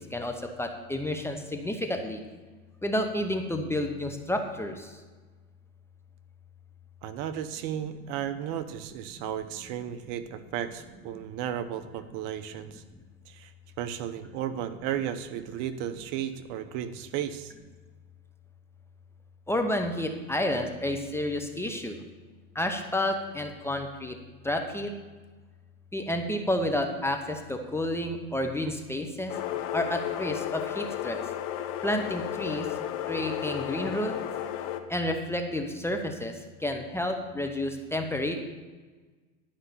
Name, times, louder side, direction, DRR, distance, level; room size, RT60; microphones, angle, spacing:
voice 1, 0.0-2.2 2.8-5.0 19.5-22.0 22.5-24.2 24.4-24.9 25.9-29.3 29.7-31.2 31.8-32.7 33.1-34.2 34.9-38.4, left 1 dB, 5° left, 4 dB, 0.8 m, -30 dB
voice 2, 7.0-12.8 13.3-13.5 13.8-17.5, right 10 dB, 50° right, 11 dB, 0.9 m, -34 dB
sound 1, 29.3-34.8, left 11 dB, 45° left, 1.0 m, -33 dB
11.5 x 5.5 x 6.8 m, 1.4 s
hypercardioid pair, 115°, 42 cm